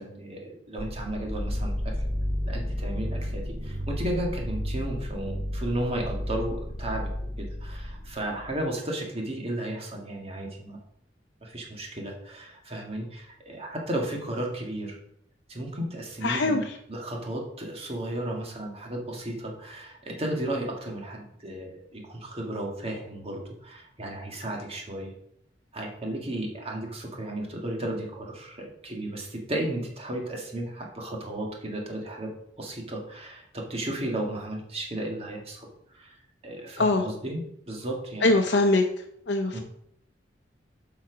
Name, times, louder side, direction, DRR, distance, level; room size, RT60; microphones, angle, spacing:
voice 1, 0.0-1.9 2.4-7.1 7.4-10.8 11.4-15.0 15.5-16.6 16.9-25.1 25.7-32.3 32.6-35.7 35.9-36.2 36.4-38.3 39.5-39.6, right 1 dB, 35° right, 0 dB, 1.8 m, -34 dB
sound 1, 0.8-8.6, equal, 20° left, 2.0 m, -32 dB
voice 2, 16.2-16.8 36.8-37.1 38.2-38.8 39.3-39.6, left 2 dB, 65° left, 2 dB, 0.7 m, -22 dB
7.5 x 5.8 x 5.0 m, 0.74 s
head